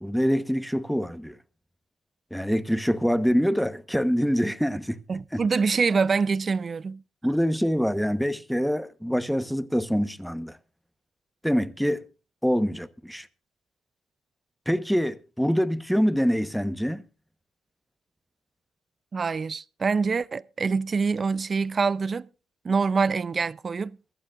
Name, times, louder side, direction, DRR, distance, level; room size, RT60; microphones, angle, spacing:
voice 1, 0.0-1.4 2.3-5.0 5.3-5.4 7.2-10.6 11.4-12.0 12.4-13.3 14.7-17.0, equal, ahead, 1.1 m, -25 dB
voice 2, 5.1-7.0 19.1-22.3 22.6-24.0, right 5 dB, 40° right, 0.6 m, -25 dB
23.0 x 12.0 x 2.5 m
cardioid pair, 90°, 0 cm